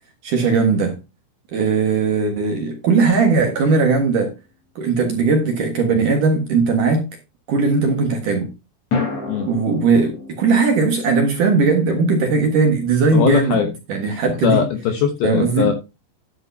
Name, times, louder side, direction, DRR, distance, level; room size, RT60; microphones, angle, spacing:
voice 1, 0.2-1.0 1.5-4.3 4.8-7.0 7.5-8.5 9.4-13.6 13.9-14.6 15.2-15.7, right 4 dB, 60° right, 2.4 m, -18 dB
sound 1, 8.9-13.2, left 4 dB, 35° left, 4.5 m, -32 dB
voice 2, 13.1-13.7 14.4-15.7, left 8 dB, 75° left, 2.2 m, -20 dB
11.0 x 10.0 x 2.8 m
omnidirectional pair, 5.5 m